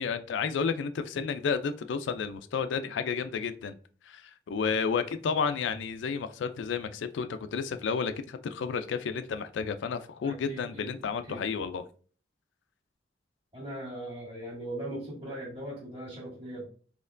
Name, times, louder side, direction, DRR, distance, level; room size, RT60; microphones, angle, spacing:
voice 1, 0.0-3.7 4.1-11.8, left 6 dB, 75° left, 0.3 m, -31 dB
voice 2, 10.2-10.9 11.3-11.5 13.5-16.7, right 1 dB, 25° right, 1.5 m, -39 dB
4.2 x 3.0 x 2.5 m
head